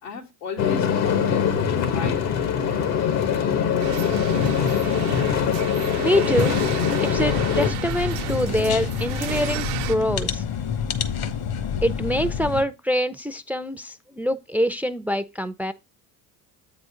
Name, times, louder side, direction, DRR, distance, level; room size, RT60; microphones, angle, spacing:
voice 1, 0.0-2.5, left 6 dB, 85° left, 2.3 m, -35 dB
sound 1, 0.6-7.7, left 7 dB, 70° left, 1.6 m, -22 dB
sound 2, 3.8-10.0, right 13 dB, 80° right, 0.9 m, -33 dB
voice 2, 6.0-6.6 7.0-10.4 11.8-15.7, equal, 5° right, 0.5 m, -25 dB
sound 3, 7.1-12.6, left 7 dB, 55° left, 1.3 m, -28 dB
8.1 x 4.0 x 5.0 m
hypercardioid pair, 70°, 45 cm